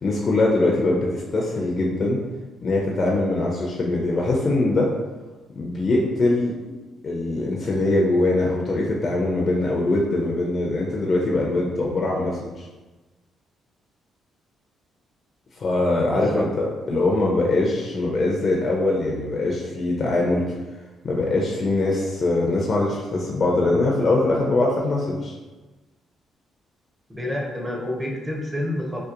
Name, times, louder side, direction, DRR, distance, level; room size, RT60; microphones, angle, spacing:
voice 1, 0.0-2.2 2.6-4.9 5.6-6.6 7.0-12.7 15.6-20.4 21.0-25.3, left 2 dB, 45° left, -2 dB, 0.4 m, -22 dB
voice 2, 16.0-16.5 27.1-29.0, left 1 dB, 10° right, -1 dB, 0.5 m, -28 dB
2.7 x 2.0 x 2.4 m, 1.2 s
cardioid pair, 90°, 0 cm